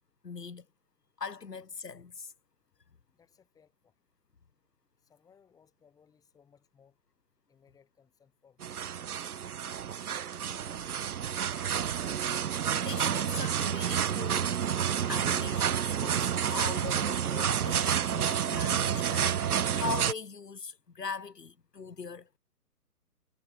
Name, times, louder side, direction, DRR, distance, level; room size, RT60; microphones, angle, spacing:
voice 1, 0.2-0.7 1.2-2.3 12.5-14.6 15.1-22.4, left 5 dB, 80° left, 4.6 m, -41 dB
voice 2, 3.1-4.0 5.0-7.0 7.5-9.0 9.8-11.5, left 7 dB, 5° left, 7.9 m, -65 dB
sound 1, 8.6-20.1, right 8 dB, 65° right, 1.0 m, -29 dB
hypercardioid pair, 160°, 47 cm